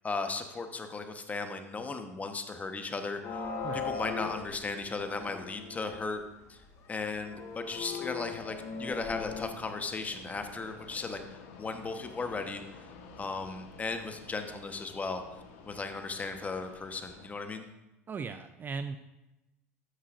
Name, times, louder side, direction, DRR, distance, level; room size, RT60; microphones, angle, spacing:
voice 1, 0.0-3.4 3.7-6.2 6.5-6.6 6.9-12.9 13.2-15.2 15.6-17.7, left 3 dB, 20° left, 7 dB, 1.2 m, -36 dB
sound 1, 3.2-6.2 6.7-6.8 7.2-9.5, left 5 dB, 40° left, 1.7 m, -39 dB
Fixed-wing aircraft airplane, 8.2-17.3, left 5 dB, 60° left, 1.4 m, -52 dB
voice 2, 18.1-19.0, right 5 dB, 25° right, 9 dB, 0.5 m, -37 dB
13.0 x 9.9 x 2.6 m, 0.97 s
hypercardioid pair, 80°, 8 cm